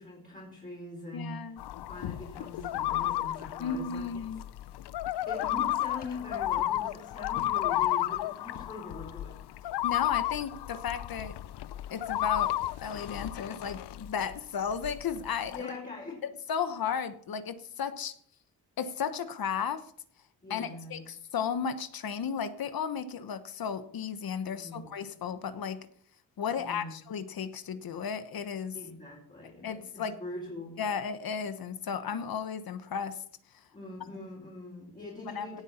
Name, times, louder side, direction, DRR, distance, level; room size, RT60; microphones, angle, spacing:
voice 1, 0.0-1.6 1.9-4.1 5.3-9.7 15.5-16.2 20.4-21.0 24.5-24.9 26.6-26.9 28.7-30.8 33.7-35.6, left 2 dB, 20° left, -4 dB, 4.2 m, -42 dB
voice 2, 1.1-1.6 3.6-4.4 9.8-11.4 11.9-15.7 16.5-18.1 18.8-19.8 20.5-25.9 26.4-28.8 29.6-30.1 30.8-33.2 35.3-35.6, left 7 dB, 60° left, 11 dB, 1.1 m, -34 dB
sound 1, 1.6-14.4 14.7-15.6, left 14 dB, 85° left, 0.6 m, -32 dB
17.5 x 7.9 x 4.3 m, 0.62 s
cardioid pair, 120°, 39 cm